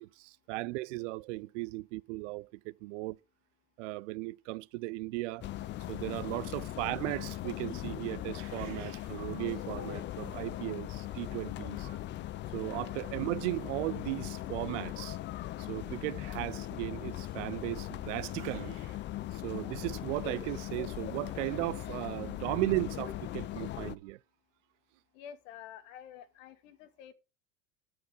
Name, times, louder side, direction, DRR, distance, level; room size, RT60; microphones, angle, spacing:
voice 1, 0.0-3.2 3.8-5.5 5.9-12.0 12.5-15.2 15.6-19.0 19.3-24.2, right 21 dB, 60° right, 0.5 m, -36 dB
sound 1, 5.4-24.0, left 14 dB, 30° left, 0.5 m, -39 dB
voice 2, 25.1-27.1, left 9 dB, 65° left, 1.8 m, -49 dB
13.0 x 4.8 x 5.4 m
hypercardioid pair, 110°, 41 cm